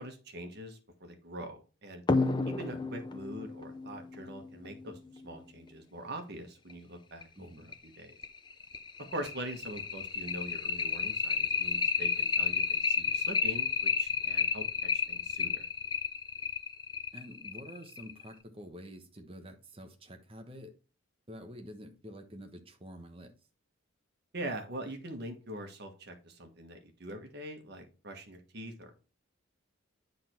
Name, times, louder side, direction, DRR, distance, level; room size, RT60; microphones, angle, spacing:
voice 1, 0.0-2.0 2.5-8.2 9.0-14.6 15.1-15.7 24.3-28.9, right 1 dB, 50° right, 1.5 m, -43 dB
sound 1, 2.1-5.2 6.7-6.8 7.2-7.3 7.7-7.8 8.2-18.3, left 5 dB, 20° left, 0.5 m, -31 dB
voice 2, 2.4-2.9 7.4-7.7 17.1-20.7 21.3-23.3, equal, 25° right, 1.2 m, -48 dB
10.0 x 3.9 x 4.5 m
head